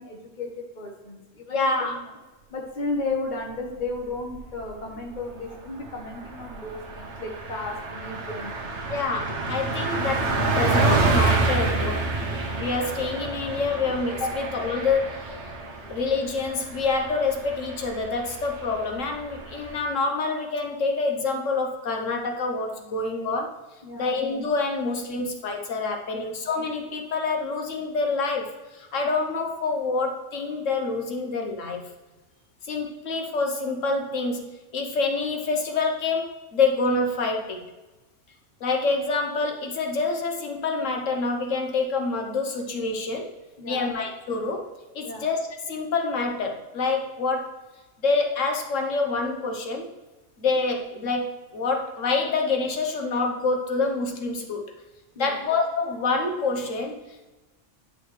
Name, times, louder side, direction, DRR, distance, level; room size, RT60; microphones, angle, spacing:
voice 1, 0.0-2.0 2.5-8.6 14.3-14.4 23.8-24.1 26.1-26.3 43.6-43.9 45.0-45.2 55.1-55.4, left 3 dB, 40° left, 0 dB, 1.4 m, -34 dB
voice 2, 1.5-2.0 8.9-12.0 12.4-15.3 15.9-23.6 24.0-31.8 32.6-37.6 38.6-43.3 43.7-44.7 44.9-45.4 45.7-47.6 48.0-49.9 50.4-54.7 55.2-57.3, left 3 dB, 85° left, 2 dB, 1.4 m, -27 dB
Car passing by, 4.1-4.8 5.1-5.2 5.5-19.8, right 3 dB, 65° right, 1.2 m, -28 dB
9.9 x 5.6 x 3.2 m, 1.2 s
omnidirectional pair, 1.3 m